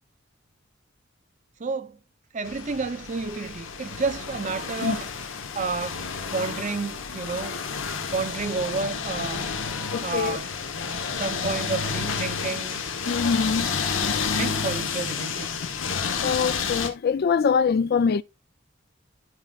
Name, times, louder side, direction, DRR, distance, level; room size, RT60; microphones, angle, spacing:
voice 1, 1.6-2.0 2.3-5.1 5.5-6.0 6.3-7.6 8.1-9.5 10.0-10.5 11.1-12.8 14.3-15.5, right 4 dB, 40° right, 0.6 m, -30 dB
sound 1, 2.4-16.9, left 5 dB, 80° left, 1.1 m, -30 dB
voice 2, 9.9-10.4 13.1-13.7 16.2-18.2, left 6 dB, 50° left, 0.4 m, -23 dB
13.0 x 5.3 x 2.4 m
head